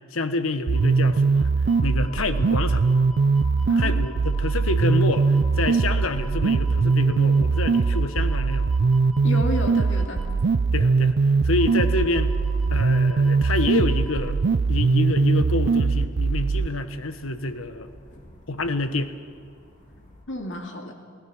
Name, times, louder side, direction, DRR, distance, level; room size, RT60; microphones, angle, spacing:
voice 1, 0.1-1.5 1.8-2.8 3.8-8.7 10.7-11.1 11.4-12.3 12.7-14.4 14.7-17.9 18.5-19.1, left 2 dB, 90° left, 10 dB, 1.2 m, -27 dB
sound 1, 0.7-20.2, left 1 dB, 40° left, 2.9 m, -45 dB
sound 2, 0.7-16.7, right 4 dB, 55° right, 0.4 m, -21 dB
voice 2, 3.7-4.0 9.2-10.2 20.3-20.9, left 1 dB, 65° left, 3 dB, 2.3 m, -31 dB
27.0 x 17.5 x 6.1 m, 2.1 s
head